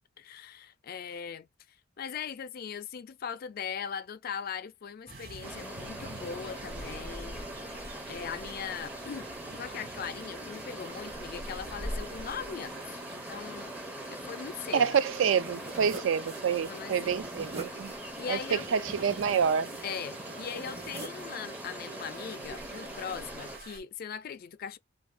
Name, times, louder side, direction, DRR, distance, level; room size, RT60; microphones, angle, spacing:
voice 1, 0.2-7.4 8.1-12.8 13.1-13.7 14.1-15.0 16.7-17.1 18.2-18.6 19.8-24.8, left 7 dB, 50° left, 0.4 m, -40 dB
sound 1, 5.1-23.8, right 2 dB, 50° right, 1.4 m, -46 dB
sound 2, 5.4-23.6, right 1 dB, 10° right, 0.5 m, -42 dB
voice 2, 14.7-17.9 18.3-19.7, right 7 dB, 70° right, 0.3 m, -27 dB
sound 3, 15.4-21.3, right 2 dB, 30° right, 0.8 m, -45 dB
2.6 x 2.5 x 3.5 m
head